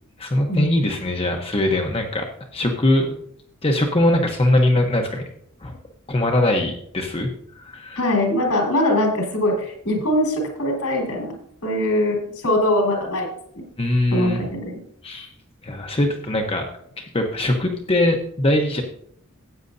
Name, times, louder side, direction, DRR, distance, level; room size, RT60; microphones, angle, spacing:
voice 1, 0.2-2.3 2.5-3.1 3.6-5.2 5.6-5.7 6.1-7.3 7.6-8.0 13.8-14.4 15.0-15.3 15.6-16.7 17.0-18.8, left 1 dB, 25° left, 2 dB, 0.9 m, -21 dB
voice 2, 8.0-11.3 11.6-13.3 13.5-13.7 14.1-14.8, left 1 dB, 80° left, 1 dB, 4.2 m, -22 dB
15.0 x 8.9 x 2.7 m, 0.67 s
head